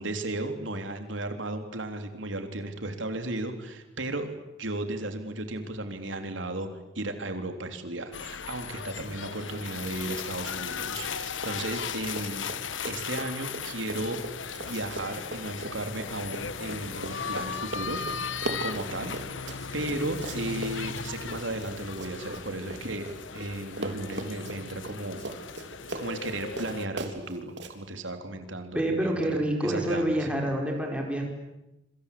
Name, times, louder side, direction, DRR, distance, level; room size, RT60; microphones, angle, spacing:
voice 1, 0.0-4.3 4.6-6.7 7.0-12.5 12.9-14.2 14.7-19.1 19.7-23.1 23.3-25.5 25.9-30.3, right 2 dB, 85° right, 6 dB, 3.6 m, -35 dB
sound 1, 8.1-26.9, left 6 dB, 85° left, 1.2 m, -37 dB
Run, 11.3-11.9 12.1-23.5 23.8-27.7, right 2 dB, 65° right, 3.8 m, -39 dB
voice 2, 28.7-31.2, right 1 dB, 5° right, 1 dB, 4.9 m, -27 dB
27.0 x 25.5 x 8.6 m, 0.94 s
head